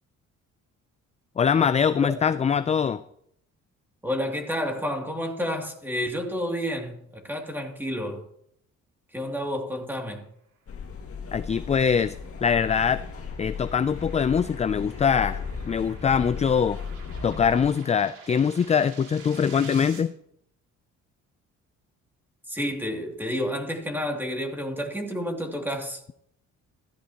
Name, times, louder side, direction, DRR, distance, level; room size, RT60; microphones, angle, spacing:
voice 1, 1.4-3.0 11.3-12.2 12.4-13.0 13.4-16.8 17.2-20.1, left 7 dB, 25° left, 0.4 m, -23 dB
voice 2, 4.0-8.2 9.1-10.3 22.5-26.0, equal, 5° right, 2.6 m, -30 dB
sound 1, 10.7-17.7, left 5 dB, 50° left, 1.9 m, -36 dB
sound 2, 11.1-20.0, right 6 dB, 90° right, 2.7 m, -49 dB
15.0 x 14.5 x 2.9 m
cardioid pair, 90°, 30 cm